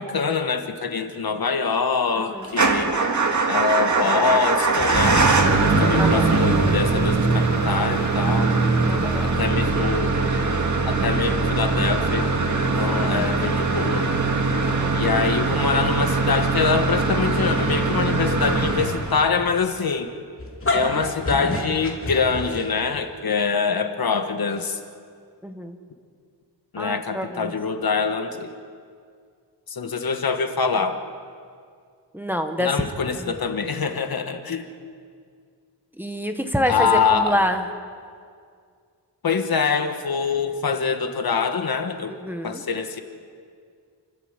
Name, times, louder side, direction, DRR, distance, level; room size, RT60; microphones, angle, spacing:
voice 1, 0.0-2.9 3.5-5.2 5.6-8.6 9.2-10.1 10.9-12.3 12.7-14.1 14.9-20.1 20.7-24.8 26.7-28.5 29.7-31.0 32.6-34.7 36.7-37.4 39.2-42.2 42.4-43.0, left 5 dB, 55° left, 7 dB, 1.4 m, -24 dB
Motor vehicle (road) / Engine starting / Idling, 2.5-19.5, right 3 dB, 40° right, 2.1 m, -21 dB
voice 2, 8.8-9.4 12.9-13.2 14.6-15.0 25.4-25.7 26.8-27.5 32.1-32.7 33.2-33.3 36.0-37.6 42.1-42.6, equal, 5° right, 5 dB, 1.3 m, -27 dB
sound 1, 20.4-23.0, left 2 dB, 30° left, 2.9 m, -27 dB
29.5 x 14.0 x 8.2 m, 2.2 s
wide cardioid pair, 165°, 44 cm